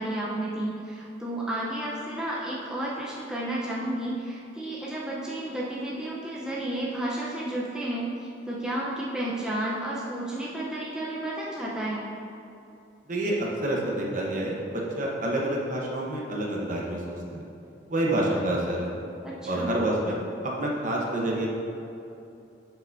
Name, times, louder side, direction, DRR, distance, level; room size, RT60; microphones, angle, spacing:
voice 1, 0.0-12.0 19.2-19.7, right 1 dB, 5° right, -6 dB, 0.7 m, -32 dB
voice 2, 13.1-17.5 17.9-18.9 19.5-20.2 20.4-21.5, right 1 dB, 45° right, -2 dB, 1.0 m, -28 dB
7.8 x 7.0 x 2.7 m, 2.8 s
head